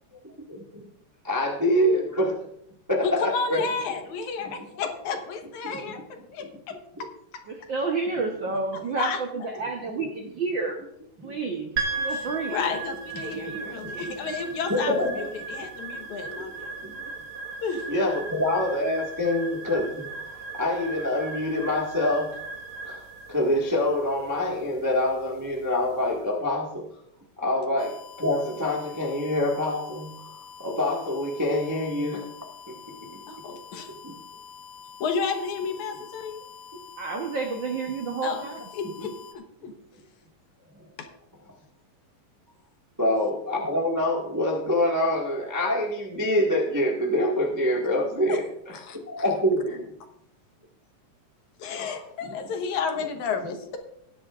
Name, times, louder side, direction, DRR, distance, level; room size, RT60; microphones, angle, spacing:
voice 1, 0.2-0.9 1.2-2.4 2.9-3.6 5.6-5.9 7.0-7.1 11.2-11.3 14.7-15.3 15.6-15.7 16.8-16.9 17.9-22.3 22.8-26.8 27.4-32.2 32.7-32.8 34.0-34.1 39.0-39.1 40.8-40.9 43.0-49.9 51.7-52.0, left 1 dB, 20° right, -1 dB, 0.4 m, -26 dB
voice 2, 3.0-6.8 9.0-9.2 12.5-14.9 15.5-16.7 17.6-17.9 33.3-33.9 35.0-36.4 38.2-38.5 38.8-39.7 41.0-41.1 48.3-48.4 48.7-49.0 51.6-53.8, left 5 dB, 70° left, 5 dB, 2.5 m, -31 dB
voice 3, 7.5-10.8 11.2-12.6 37.0-38.7, right 4 dB, 75° right, 3 dB, 1.1 m, -30 dB
sound 1, 11.8-26.1, right 4 dB, 50° right, 2.2 m, -37 dB
sound 2, 27.8-39.3, left 6 dB, 90° left, 2.6 m, -46 dB
18.5 x 10.0 x 2.5 m, 0.74 s
omnidirectional pair, 3.6 m